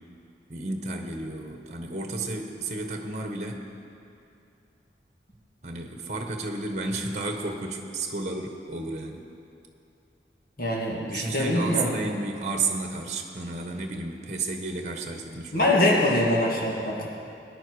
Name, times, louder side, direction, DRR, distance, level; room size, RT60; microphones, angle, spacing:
voice 1, 0.5-3.6 5.6-9.2 11.1-15.7, right 3 dB, 40° right, 4 dB, 1.2 m, -32 dB
voice 2, 10.6-11.9 15.5-17.1, left 1 dB, 50° left, -4 dB, 2.4 m, -23 dB
19.0 x 9.9 x 4.8 m, 2.7 s
head